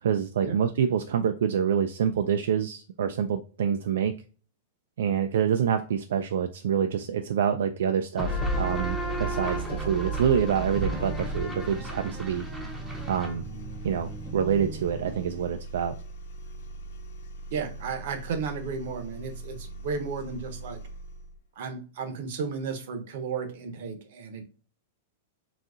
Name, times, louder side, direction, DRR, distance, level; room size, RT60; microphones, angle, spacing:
voice 1, 0.0-4.1 5.0-12.4 13.1-13.4 13.8-15.9, right 8 dB, 80° right, 7 dB, 0.3 m, -26 dB
sound 1, 8.2-15.5, right 2 dB, ahead, 0.6 m, -33 dB
sound 2, 8.4-21.4, right 2 dB, 80° left, 0.8 m, -41 dB
voice 2, 17.5-20.8 21.6-24.4, right 5 dB, 55° right, 6 dB, 0.8 m, -34 dB
3.9 x 2.7 x 2.4 m, 0.37 s
supercardioid pair, 165°, 0 cm